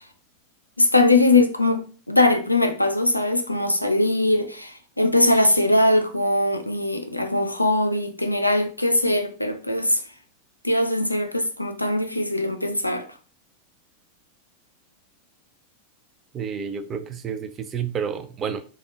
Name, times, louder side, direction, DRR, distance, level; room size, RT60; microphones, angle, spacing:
voice 1, 0.8-10.0 10.6-13.1, left 2 dB, 85° left, 0.4 m, -21 dB
voice 2, 16.3-18.6, right 7 dB, 25° right, 0.4 m, -30 dB
3.5 x 2.3 x 3.5 m
figure-of-eight pair, 90°, 0 cm